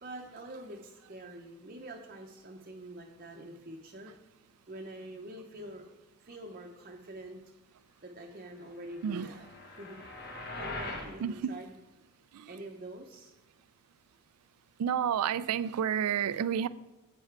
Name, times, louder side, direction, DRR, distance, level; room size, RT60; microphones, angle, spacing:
voice 1, 0.0-4.1 4.7-5.8 6.2-7.4 8.0-10.0 10.5-11.7 12.5-13.3, right 1 dB, 40° right, 0.7 m, -45 dB
sound 1, 8.9-11.1, left 2 dB, 45° left, 1.2 m, -41 dB
voice 2, 11.2-11.6 12.3-12.5 14.8-16.7, right 8 dB, 85° right, 0.3 m, -30 dB
7.7 x 5.7 x 4.6 m
head